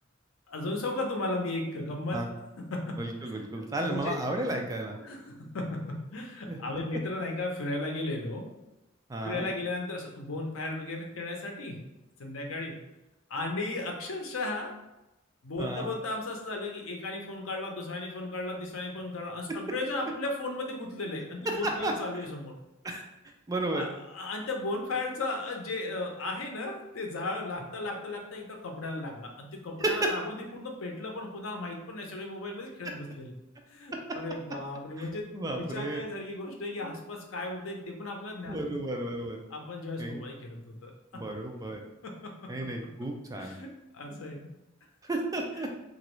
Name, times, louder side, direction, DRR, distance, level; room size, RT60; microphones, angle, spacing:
voice 1, 0.5-2.2 2.7-3.0 3.6-4.2 5.0-8.5 9.2-11.8 12.2-12.8 13.3-14.7 15.4-22.6 23.7-33.4 33.7-35.3 35.5-38.7 39.5-40.9 42.0-42.3 43.3-44.5, left 2 dB, 75° left, 2 dB, 0.6 m, -35 dB
voice 2, 3.0-5.0 6.5-6.6 9.1-9.5 15.6-15.9 21.5-22.2 22.8-23.0 23.5-23.9 29.8-30.2 35.0-36.0 36.8-36.9 38.5-39.4 40.0-40.2 41.1-41.8 42.5-43.6 45.0-45.7, right 1 dB, 15° right, 2 dB, 0.4 m, -33 dB
3.0 x 2.5 x 3.0 m, 0.96 s
head